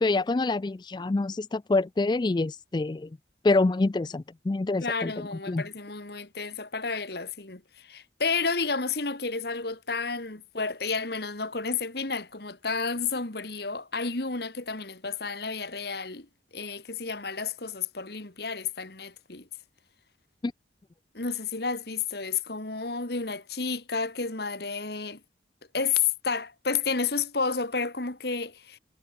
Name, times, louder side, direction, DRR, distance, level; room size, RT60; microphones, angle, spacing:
voice 1, 0.0-3.1 3.4-5.1 5.5-5.6 20.4-20.5, left 3 dB, 25° left, 0.3 m, -26 dB
voice 2, 4.8-16.3 16.5-19.5 21.1-25.2 25.7-28.8, left 5 dB, 55° left, 2.0 m, -31 dB
head